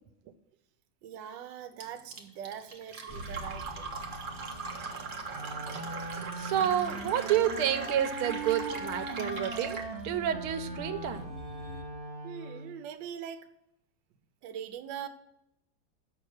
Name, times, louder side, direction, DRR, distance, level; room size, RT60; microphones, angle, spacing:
voice 1, 1.0-4.0 12.2-13.5 14.4-15.1, right 9 dB, 70° right, 7 dB, 1.3 m, -42 dB
Fill (with liquid), 1.8-9.9, right 4 dB, 50° right, 0.5 m, -40 dB
sound 1, 3.1-11.8, equal, 45° left, 1.3 m, -48 dB
Wind instrument woodwind instrument, 5.3-12.8, right 2 dB, 30° right, 1.5 m, -40 dB
voice 2, 6.4-9.8 10.0-11.3, right 10 dB, 85° right, 10 dB, 1.5 m, -29 dB
6.7 x 6.0 x 6.3 m, 0.79 s
omnidirectional pair, 2.3 m